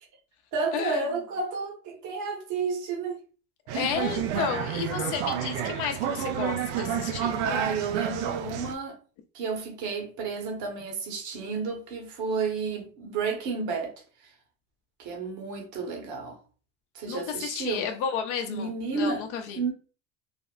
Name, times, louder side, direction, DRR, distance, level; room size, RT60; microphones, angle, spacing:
voice 1, 0.5-3.2 7.4-9.0 9.3-14.0 15.0-16.4 16.9-17.9 18.5-19.3 19.6-19.7, right 4 dB, 55° right, 1.0 m, -31 dB
voice 2, 3.7-7.4 17.1-19.6, left 7 dB, 60° left, 0.5 m, -32 dB
sound 1, 3.7-8.7, right 9 dB, 80° right, 0.5 m, -30 dB
3.4 x 2.0 x 2.3 m
hypercardioid pair, 80°, 35 cm